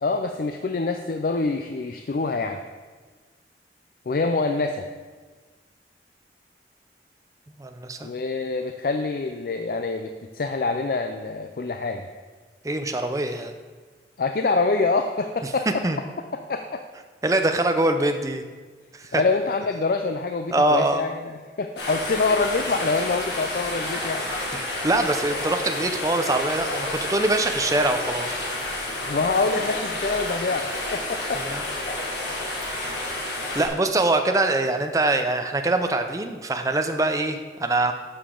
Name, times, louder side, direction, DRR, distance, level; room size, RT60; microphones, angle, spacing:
voice 1, 0.0-2.6 4.1-4.9 8.0-12.1 14.2-15.8 16.5-16.8 19.1-24.3 29.1-31.6 32.6-32.9, left 3 dB, 55° left, 6 dB, 0.4 m, -26 dB
voice 2, 7.6-8.1 12.6-13.5 15.8-16.0 17.2-18.4 18.9-19.2 20.5-21.0 24.5-28.4 31.4-31.6 32.7-32.8 33.5-37.9, right 2 dB, 20° right, 6 dB, 0.5 m, -23 dB
sound 1, 21.8-33.7, left 1 dB, 75° left, 1.9 m, -30 dB
10.5 x 6.6 x 3.8 m, 1.4 s
head